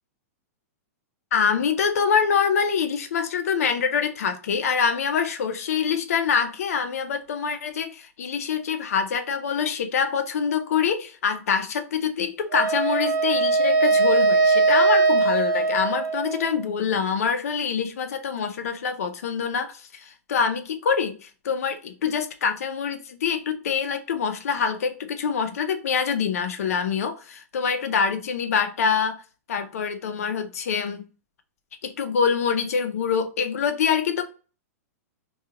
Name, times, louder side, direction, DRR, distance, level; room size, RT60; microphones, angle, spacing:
voice 1, 1.3-29.2 29.5-31.0 31.8-34.2, left 6 dB, 65° left, 0.6 m, -25 dB
Wind instrument woodwind instrument, 12.5-16.7, right 3 dB, 35° right, 0.5 m, -21 dB
2.9 x 2.3 x 3.6 m
supercardioid pair, 180°, 9 cm